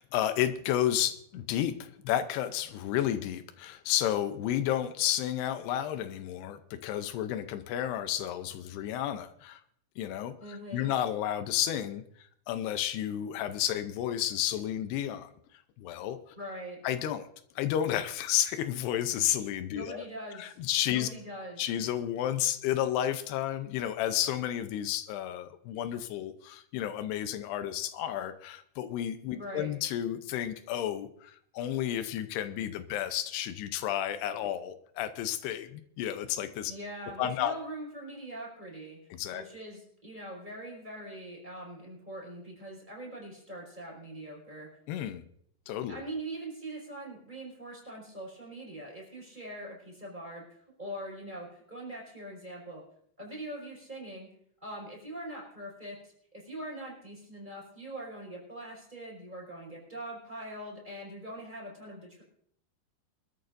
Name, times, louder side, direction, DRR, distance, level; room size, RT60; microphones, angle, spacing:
voice 1, 0.0-9.6 10.0-12.0 12.5-15.3 15.8-16.2 16.8-17.3 17.6-20.0 20.4-21.1 21.6-36.7 37.2-37.5 39.1-39.4 44.9-45.2 45.7-46.0, left 11 dB, 85° left, 10 dB, 2.8 m, -31 dB
voice 2, 10.4-10.9 16.4-16.8 19.7-20.6 20.9-21.6 29.3-29.7 36.7-39.0 39.3-44.7 45.9-52.8 53.2-54.3 54.6-62.2, right 1 dB, 10° right, -2 dB, 4.8 m, -42 dB
25.0 x 13.0 x 2.6 m, 0.67 s
omnidirectional pair, 4.6 m